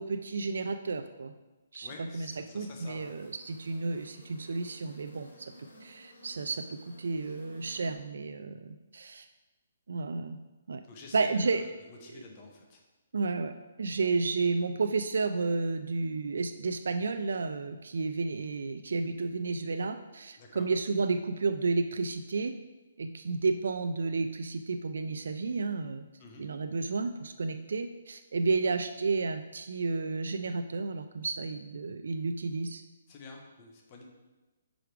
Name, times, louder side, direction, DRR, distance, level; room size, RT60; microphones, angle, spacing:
voice 1, 0.0-1.3 1.7-5.5 5.8-9.3 9.9-10.4 10.7-10.8 11.1-11.6 12.1-12.2 13.1-13.5 13.8-22.5 23.0-26.0 26.4-32.8, right 4 dB, 80° right, 8 dB, 0.3 m, -32 dB
voice 2, 1.8-3.1 10.9-12.8 20.4-20.7 26.2-26.4 33.1-34.0, left 3 dB, 25° left, 1 dB, 0.9 m, -49 dB
sound 1, 2.9-7.9, equal, 90° left, 1.4 m, -55 dB
5.0 x 4.7 x 4.6 m, 1.1 s
hypercardioid pair, 170°, 0 cm